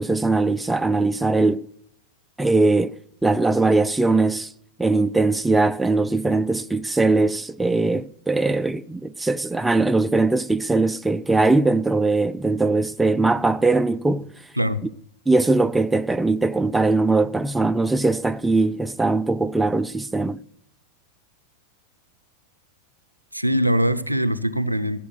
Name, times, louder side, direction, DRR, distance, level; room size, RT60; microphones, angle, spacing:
voice 1, 0.0-1.7 2.4-2.9 3.2-4.5 4.8-14.3 15.3-20.4, right 3 dB, 5° right, 0.5 m, -20 dB
voice 2, 23.3-25.0, equal, 90° right, 0.7 m, -22 dB
15.0 x 7.6 x 7.9 m
figure-of-eight pair, 90°, 0 cm